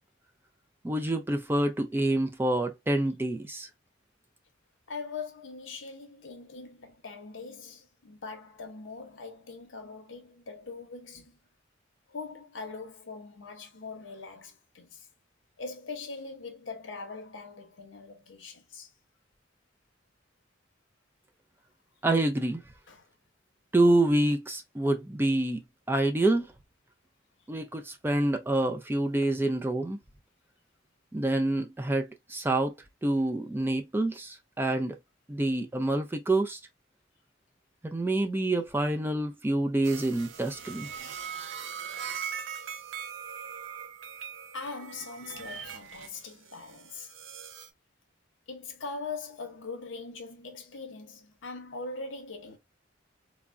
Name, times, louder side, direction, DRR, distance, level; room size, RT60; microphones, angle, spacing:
voice 1, 0.8-3.7 22.0-22.6 23.7-26.5 27.5-30.0 31.1-32.7 33.0-35.0 35.3-36.6 37.8-40.9, right 1 dB, 10° right, 0.3 m, -27 dB
voice 2, 4.9-11.4 12.1-15.1 15.6-18.9 22.9-23.1 44.5-47.1 48.5-52.6, left 4 dB, 70° left, 0.8 m, -41 dB
sound 1, 39.8-47.7, right 7 dB, 70° right, 0.5 m, -40 dB
3.5 x 2.0 x 2.4 m
head